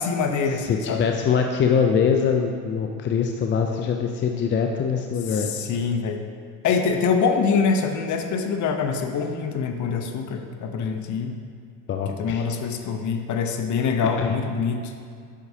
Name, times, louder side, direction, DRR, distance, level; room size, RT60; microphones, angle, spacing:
voice 1, 0.0-1.1 5.3-6.2 6.6-11.3 12.1-14.9, left 5 dB, 45° left, 5 dB, 0.8 m, -24 dB
voice 2, 0.6-5.5 11.9-12.4 14.2-14.3, left 6 dB, 30° left, 3 dB, 0.4 m, -23 dB
8.4 x 5.9 x 2.8 m, 2.2 s
supercardioid pair, 85°, 41 cm